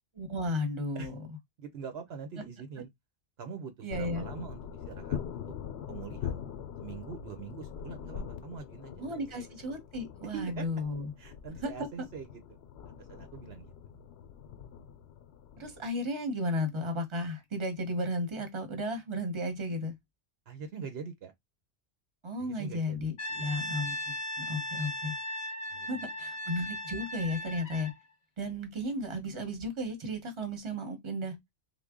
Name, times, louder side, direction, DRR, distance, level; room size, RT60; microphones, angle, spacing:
voice 1, 0.1-1.1 3.8-4.3 9.0-11.1 11.6-11.9 15.6-19.9 22.2-25.1 25.9-27.9 28.4-31.4, left 1 dB, 30° right, 1.0 m, -34 dB
voice 2, 1.6-2.9 3.4-5.4 5.9-6.4 6.8-9.4 10.2-10.7 11.2-12.4 13.0-13.7 20.5-21.3 22.4-23.0 23.3-23.7 25.7-26.1, right 6 dB, 70° right, 0.9 m, -44 dB
sound 1, 3.9-15.9, left 8 dB, 75° left, 0.8 m, -42 dB
Brass instrument, 23.2-28.0, equal, 45° left, 0.7 m, -37 dB
3.4 x 2.2 x 3.6 m
omnidirectional pair, 1.1 m